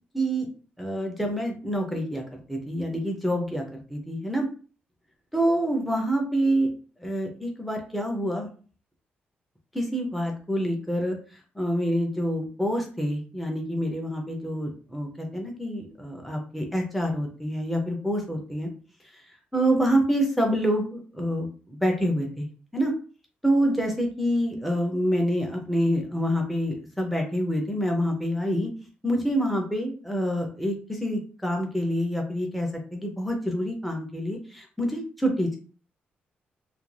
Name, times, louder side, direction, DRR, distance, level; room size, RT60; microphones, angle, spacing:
voice 1, 0.1-0.5 0.8-4.5 5.3-6.7 7.0-8.5 9.7-11.2 11.6-18.7 19.5-22.5 22.7-22.9 23.4-28.7 29.0-35.6, equal, ahead, 1 dB, 0.4 m, -27 dB
2.3 x 2.2 x 3.1 m, 0.39 s
wide cardioid pair, 160°, 4 cm